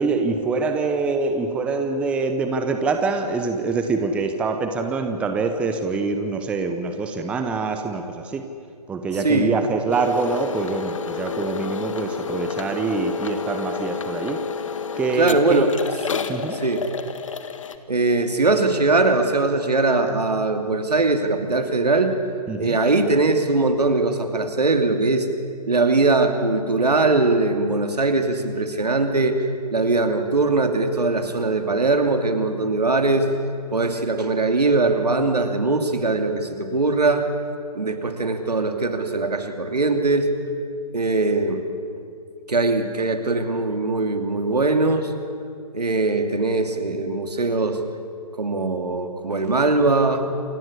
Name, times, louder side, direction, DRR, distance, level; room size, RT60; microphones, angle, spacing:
voice 1, 0.0-8.4 8.9-14.4 15.0-15.6 16.3-16.6 22.5-22.8, right 4 dB, 5° right, 6 dB, 0.8 m, -25 dB
voice 2, 9.1-9.5 15.2-15.7 16.5-16.9 17.9-22.1 22.6-25.3 25.7-29.4 29.7-33.4 33.7-37.3 37.7-40.3 40.9-41.6 42.5-45.1 45.7-47.8 48.4-50.3, right 3 dB, 75° right, 6 dB, 2.8 m, -21 dB
sound 1, 9.9-17.8, left 6 dB, 50° left, 1.6 m, -30 dB
28.0 x 15.5 x 9.8 m, 2.4 s
figure-of-eight pair, 145°, 20 cm